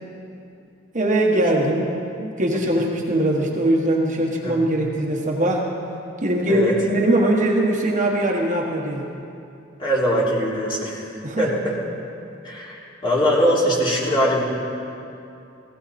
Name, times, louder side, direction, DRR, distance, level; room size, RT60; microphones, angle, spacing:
voice 1, 0.9-5.7 6.2-9.1 11.2-11.8, right 1 dB, 40° right, -1 dB, 1.4 m, -21 dB
voice 2, 4.4-4.7 6.5-6.7 9.8-11.7 12.4-14.4, equal, 25° left, -6 dB, 3.5 m, -22 dB
18.0 x 16.5 x 4.3 m, 2.7 s
head